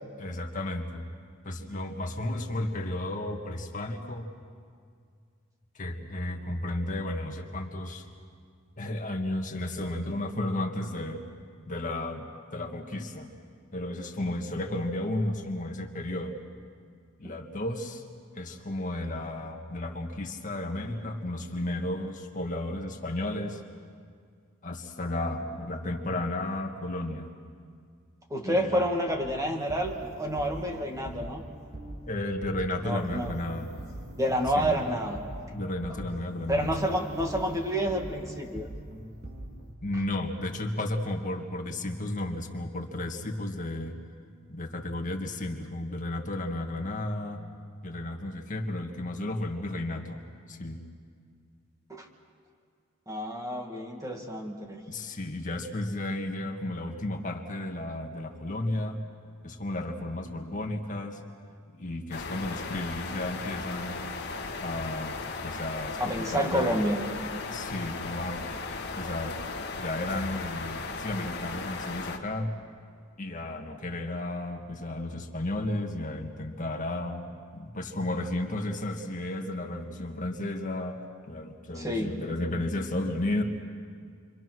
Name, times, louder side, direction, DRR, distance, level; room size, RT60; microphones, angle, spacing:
voice 1, 0.2-1.0 1.4-4.3 5.7-8.1 8.8-11.2 11.7-13.3 13.7-16.4 17.2-18.1 18.3-23.6 24.6-27.3 28.4-28.9 32.1-33.7 34.5-34.8 35.5-36.9 39.8-43.9 44.5-47.4 47.8-50.2 50.5-50.8 54.9-59.0 59.4-61.2 61.7-64.0 64.6-66.8 67.5-68.4 69.0-69.3 69.8-72.5 73.2-77.3 77.5-83.4, left 1 dB, 40° left, 2 dB, 2.0 m, -33 dB
voice 2, 28.3-31.4 32.8-33.3 34.2-35.2 36.5-38.7 51.9-52.1 53.1-54.8 66.0-67.0 81.7-82.2, equal, 15° right, 2 dB, 2.3 m, -29 dB
sound 1, 29.1-39.7, right 1 dB, 55° right, 4.1 m, -43 dB
sound 2, 62.1-72.2, left 3 dB, 55° left, 2.0 m, -36 dB
29.5 x 24.5 x 6.2 m, 2.2 s
head